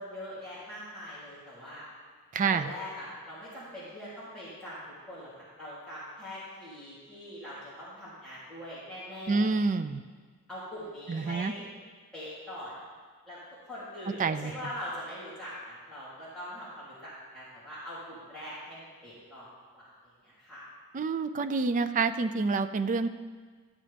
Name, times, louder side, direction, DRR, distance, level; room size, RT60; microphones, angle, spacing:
voice 1, 0.0-1.9 2.4-9.5 10.5-11.7 12.1-12.7 13.3-13.4 13.7-19.5 19.7-19.9 20.2-20.6, left 1 dB, 5° left, -13 dB, 2.9 m, -42 dB
voice 2, 2.3-2.7 9.3-10.0 11.1-11.5 14.2-14.7 20.9-23.1, right 4 dB, 35° right, 10 dB, 0.4 m, -28 dB
13.5 x 7.4 x 3.4 m, 1.5 s
head